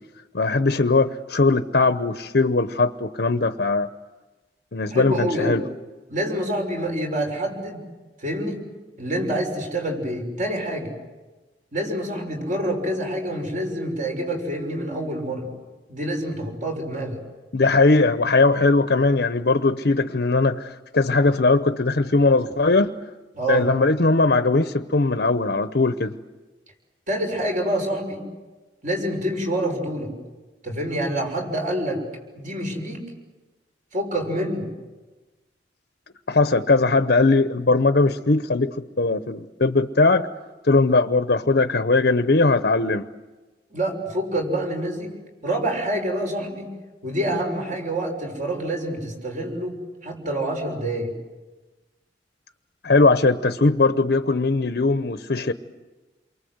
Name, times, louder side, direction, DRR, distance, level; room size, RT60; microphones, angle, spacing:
voice 1, 0.3-3.9 4.7-5.6 17.5-22.9 23.5-26.1 36.3-40.3 40.6-43.1 52.8-55.5, left 3 dB, 60° left, 10 dB, 0.8 m, -19 dB
voice 2, 4.9-5.6 6.1-7.8 8.2-8.6 9.0-10.9 11.7-15.5 15.9-17.2 23.3-23.7 27.1-28.2 28.8-30.1 30.6-32.0 32.3-33.0 33.9-34.7 43.7-45.1 45.4-46.7 47.0-51.1, right 1 dB, 45° right, 3 dB, 6.5 m, -27 dB
29.0 x 23.5 x 8.0 m, 1.2 s
head